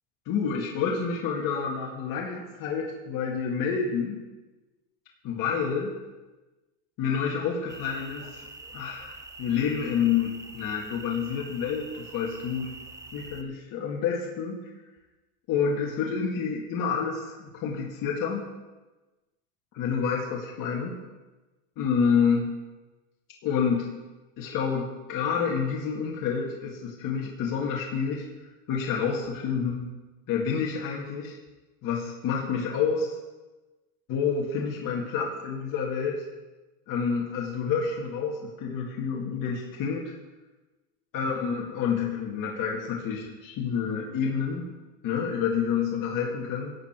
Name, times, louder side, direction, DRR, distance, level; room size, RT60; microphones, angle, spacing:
voice 1, 0.3-4.2 5.2-6.0 7.0-8.4 8.7-9.1 9.4-12.7 13.1-14.7 15.5-18.5 19.7-21.0 21.8-22.5 23.4-23.9 24.4-28.3 28.7-29.9 30.3-31.4 31.8-33.2 34.1-36.1 36.9-40.1 41.1-44.7 45.0-46.7, left 6 dB, 45° left, -2 dB, 2.2 m, -28 dB
sound 1, 7.7-13.4, right 2 dB, 5° right, 0.7 m, -45 dB
14.5 x 8.7 x 4.5 m, 1.2 s
supercardioid pair, 125°, 47 cm